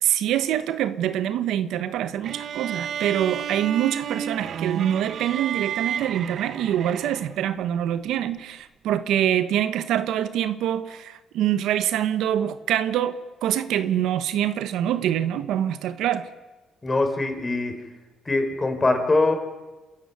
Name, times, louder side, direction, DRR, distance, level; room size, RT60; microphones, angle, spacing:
voice 1, 0.0-16.3, right 11 dB, 85° right, 12 dB, 1.1 m, -25 dB
sound 1, 2.2-7.5, right 9 dB, 65° right, 0.8 m, -32 dB
voice 2, 16.8-17.7 18.3-19.3, left 2 dB, 25° left, 5 dB, 4.4 m, -22 dB
26.0 x 14.0 x 9.4 m, 1.2 s
cardioid pair, 90°, 0 cm